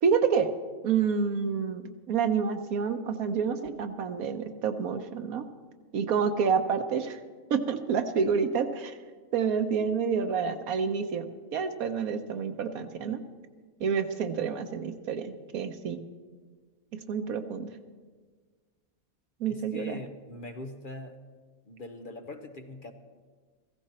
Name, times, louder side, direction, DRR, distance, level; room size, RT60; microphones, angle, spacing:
voice 1, 0.0-0.5 0.8-5.4 5.9-7.2 7.5-8.9 9.3-13.2 13.8-16.0 17.1-17.7 19.4-20.0, right 6 dB, 90° right, 8 dB, 1.3 m, -28 dB
voice 2, 19.5-21.2 21.7-22.9, left 2 dB, 45° left, 7 dB, 0.9 m, -42 dB
15.5 x 15.0 x 4.3 m, 1.5 s
omnidirectional pair, 1.5 m